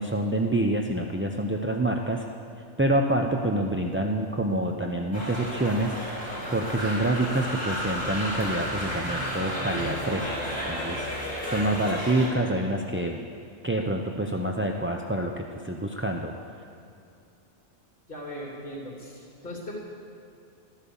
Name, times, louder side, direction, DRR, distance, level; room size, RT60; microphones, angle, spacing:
voice 1, 0.0-2.2 2.8-5.9 6.5-10.4 10.7-13.2 13.6-16.3, right 1 dB, 15° right, 1 dB, 0.4 m, -27 dB
sound 1, 5.1-12.3, equal, 5° left, 4.7 m, -32 dB
voice 2, 18.1-19.7, equal, 45° left, -3 dB, 3.4 m, -38 dB
13.0 x 12.5 x 7.1 m, 2.5 s
omnidirectional pair, 1.3 m